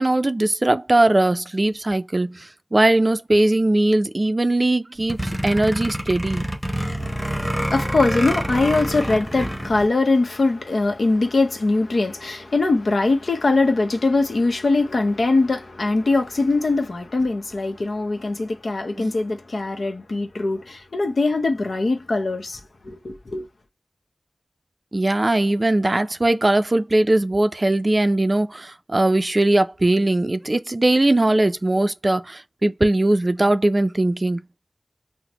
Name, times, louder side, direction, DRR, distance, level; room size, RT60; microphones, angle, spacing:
voice 1, 0.0-6.4 19.0-19.1 24.9-34.4, right 2 dB, 40° right, 0.4 m, -20 dB
sound 1, 5.0-9.9, equal, 5° right, 0.8 m, -27 dB
voice 2, 7.0-23.5, left 3 dB, 80° left, 0.7 m, -22 dB
5.7 x 2.1 x 2.9 m
wide cardioid pair, 45°, 0 cm